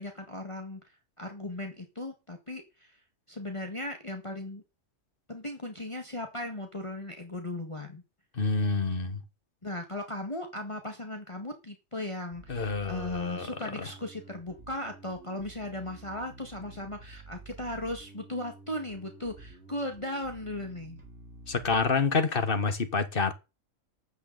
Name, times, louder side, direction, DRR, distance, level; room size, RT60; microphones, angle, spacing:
voice 1, 0.0-3.0 3.3-4.6 5.3-8.0 9.6-21.0, left 1 dB, 25° left, 1.9 m, -37 dB
voice 2, 8.3-9.2 12.5-13.5 13.7-13.9 21.5-23.3, left 4 dB, 45° left, 1.7 m, -28 dB
Bass guitar, 12.3-21.9, right 2 dB, 60° right, 3.4 m, -50 dB
15.0 x 13.0 x 4.1 m
omnidirectional pair, 1.3 m